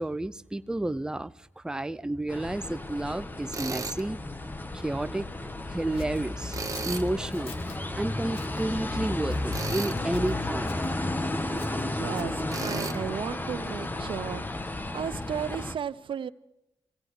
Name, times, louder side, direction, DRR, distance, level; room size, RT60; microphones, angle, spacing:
voice 1, 0.0-4.2 4.7-5.3 5.7-6.6 6.8-7.5 8.0-10.7, right 1 dB, 10° right, 0.5 m, -31 dB
sound 1, 2.3-15.7, left 2 dB, 20° left, 1.2 m, -33 dB
Tools, 3.5-4.0 6.5-7.1 9.5-10.0 12.5-13.0, right 4 dB, 35° right, 1.3 m, -34 dB
Scissors, 5.9-7.8 8.3-8.6 9.2-9.9 10.1-10.9 11.6-13.1, left 5 dB, 80° left, 1.5 m, -50 dB
voice 2, 11.8-16.3, right 8 dB, 65° right, 0.5 m, -35 dB
24.5 x 16.5 x 3.2 m
supercardioid pair, 50°, 9 cm